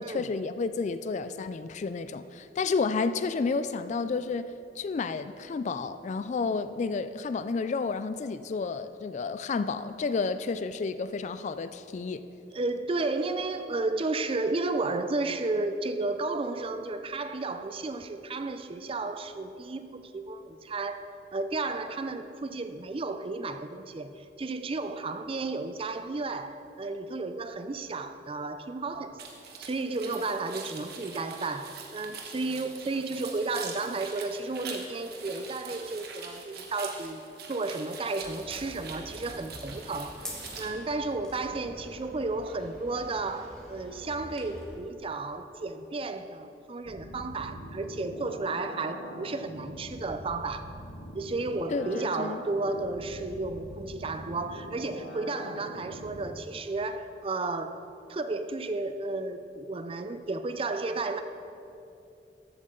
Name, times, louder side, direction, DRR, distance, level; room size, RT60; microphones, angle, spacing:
voice 1, 0.0-12.2 51.7-52.4, left 4 dB, 40° left, 12 dB, 0.3 m, -31 dB
voice 2, 12.5-29.2 29.6-40.3 40.6-50.7 51.1-57.8 58.1-61.2, right 3 dB, 30° right, 10 dB, 0.4 m, -33 dB
sound 1, 29.2-40.7, right 5 dB, 60° right, 1.2 m, -44 dB
sound 2, 38.2-44.8, equal, 5° left, 1.6 m, -45 dB
sound 3, 46.8-56.2, equal, 85° left, 1.8 m, -43 dB
14.0 x 8.0 x 3.8 m, 2.7 s
head